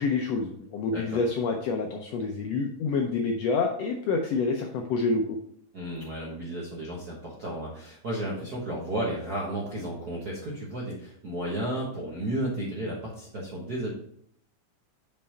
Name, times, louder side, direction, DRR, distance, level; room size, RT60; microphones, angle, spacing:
voice 1, 0.0-5.4, left 4 dB, 80° left, 2 dB, 1.5 m, -27 dB
voice 2, 5.7-13.9, right 1 dB, 60° right, -4 dB, 1.0 m, -33 dB
5.5 x 5.5 x 4.3 m, 0.67 s
omnidirectional pair, 3.6 m